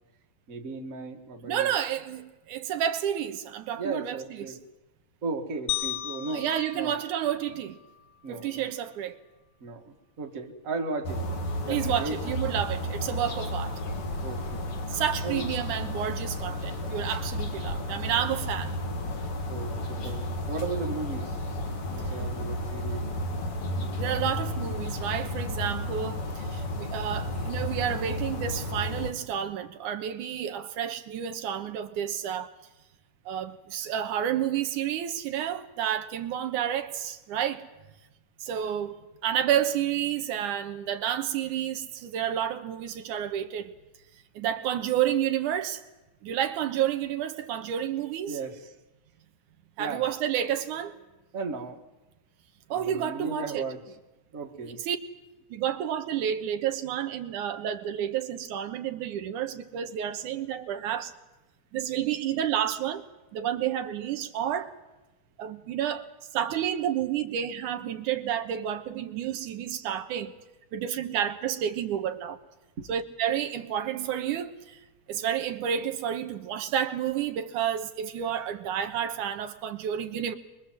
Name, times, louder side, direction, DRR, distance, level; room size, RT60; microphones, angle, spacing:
voice 1, 0.5-1.7 3.8-4.6 5.2-6.5 6.7-7.0 8.2-8.7 9.6-11.2 11.6-12.4 14.2-14.7 15.2-15.5 19.5-23.0 48.3-48.7 49.8-50.1 51.3-51.8 52.7-53.8 54.3-54.8 72.8-72.9, right 3 dB, 30° right, 2.0 m, -36 dB
voice 2, 1.4-4.6 6.3-7.8 8.3-9.2 11.7-13.8 14.9-18.7 20.0-20.1 24.0-32.5 33.3-37.6 38.4-43.7 44.4-45.8 46.2-48.4 49.8-50.9 52.7-53.6 54.8-55.0 55.5-61.1 61.7-63.0 63.3-64.7 65.4-66.1 66.3-70.3 70.7-72.4 72.9-74.8 75.1-80.3, right 10 dB, 85° right, 2.7 m, -30 dB
sound 1, 5.7-8.0, left 14 dB, 65° left, 1.7 m, -35 dB
sound 2, 11.0-29.1, left 1 dB, 50° left, 2.8 m, -32 dB
23.5 x 22.5 x 7.6 m
omnidirectional pair, 3.5 m